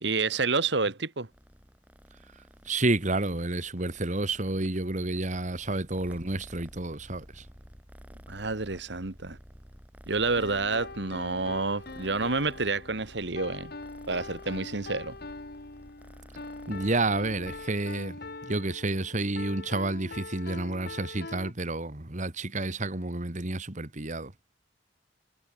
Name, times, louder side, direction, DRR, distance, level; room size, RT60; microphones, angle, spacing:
voice 1, 0.0-1.3 8.3-9.4 10.1-13.7 14.1-15.2, right 3 dB, 65° right, 1.7 m, -29 dB
Purr, 1.3-17.9, equal, 10° right, 6.5 m, -51 dB
voice 2, 2.6-7.5 16.7-18.2 18.4-24.3, right 2 dB, 40° right, 2.0 m, -30 dB
sound 1, 10.4-21.5, left 3 dB, 60° left, 2.1 m, -42 dB
head